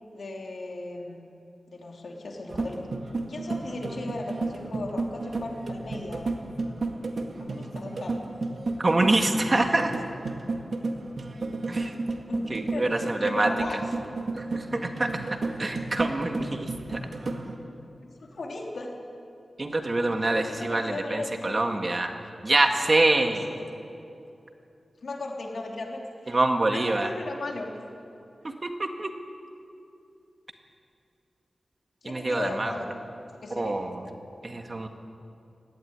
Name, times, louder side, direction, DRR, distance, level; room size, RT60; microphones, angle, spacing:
voice 1, 0.1-1.3 1.7-2.9 3.3-6.3 7.4-8.2 12.3-12.4 12.7-13.8 18.0-18.9 20.4-21.9 23.5-23.6 25.0-26.4 26.7-27.7 32.0-33.0 33.4-33.8, left 2 dB, 75° left, 0 dB, 3.2 m, -36 dB
sound 1, 2.5-17.6, right 3 dB, 65° right, 2.0 m, -33 dB
voice 2, 8.8-9.9 11.7-11.9 12.5-13.5 14.4-15.1 15.6-17.0 19.6-22.1 22.4-23.5 26.3-27.1 28.4-29.1 32.0-32.7 33.6-34.0 34.4-34.9, right 2 dB, 40° right, 4 dB, 1.9 m, -25 dB
18.5 x 15.5 x 9.8 m, 2.6 s
wide cardioid pair, 75°, 0 cm